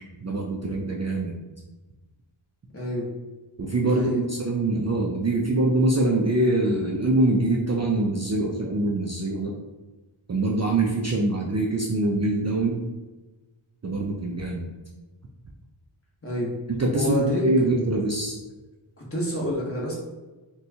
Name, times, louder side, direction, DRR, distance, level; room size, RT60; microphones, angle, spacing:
voice 1, 0.2-1.4 3.6-9.5 10.3-12.8 13.8-14.6 16.8-18.4, right 2 dB, 35° right, -2 dB, 0.4 m, -24 dB
voice 2, 2.7-3.1 3.8-4.2 16.2-16.5 16.9-17.4 19.0-20.0, equal, 30° left, -4 dB, 1.0 m, -28 dB
4.1 x 2.3 x 2.7 m, 1.2 s
wide cardioid pair, 90°, 48 cm